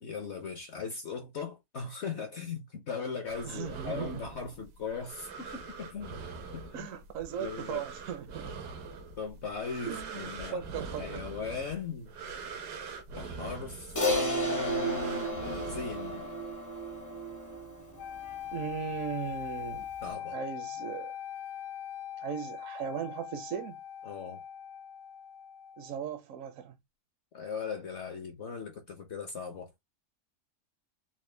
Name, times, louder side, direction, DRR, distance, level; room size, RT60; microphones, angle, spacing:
voice 1, 0.0-6.2 6.5-6.9 7.4-7.8 9.2-10.6 11.0-12.1 13.2-16.3 20.0-20.4 24.0-24.4 27.3-29.7, left 5 dB, 55° left, 0.8 m, -38 dB
sound 1, 3.3-16.6, right 4 dB, 85° right, 1.4 m, -44 dB
voice 2, 3.4-4.2 6.7-8.5 9.9-11.1 18.5-19.9 20.3-21.1 22.2-23.8 25.8-26.7, right 8 dB, 65° right, 0.9 m, -38 dB
Crash cymbal, 14.0-18.5, equal, 20° left, 0.5 m, -33 dB
sound 2, 18.0-26.1, left 10 dB, 85° left, 1.2 m, -41 dB
4.2 x 2.1 x 3.2 m
omnidirectional pair, 1.7 m